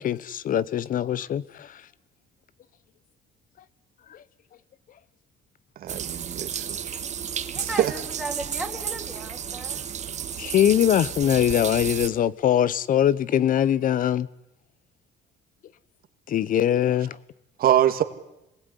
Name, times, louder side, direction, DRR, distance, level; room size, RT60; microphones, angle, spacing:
voice 1, 0.0-1.7 10.4-14.3 16.3-17.2, left 10 dB, 55° left, 1.0 m, -22 dB
voice 2, 5.8-6.7 7.6-7.9 17.6-18.0, right 11 dB, 60° right, 2.2 m, -23 dB
sound 1, 5.9-12.1, right 8 dB, 45° right, 1.9 m, -32 dB
voice 3, 7.5-9.9, right 1 dB, 5° left, 4.7 m, -35 dB
26.5 x 20.5 x 10.0 m
cardioid pair, 110°, 17 cm